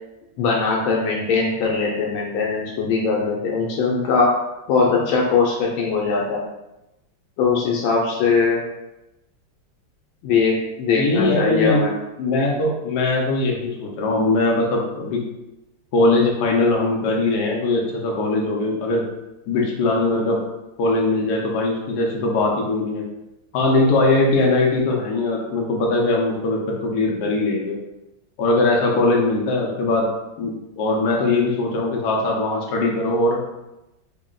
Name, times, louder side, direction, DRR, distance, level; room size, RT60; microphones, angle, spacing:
voice 1, 0.4-4.3 4.7-6.4 7.4-8.6 10.2-11.9, left 4 dB, 85° left, -2 dB, 1.4 m, -20 dB
voice 2, 11.0-11.8 12.2-15.2 15.9-19.0 19.5-20.4 20.8-23.0 23.5-27.8 28.4-30.1 30.4-33.4, left 2 dB, 70° left, -1 dB, 1.0 m, -20 dB
4.4 x 2.0 x 3.7 m, 0.96 s
omnidirectional pair, 2.1 m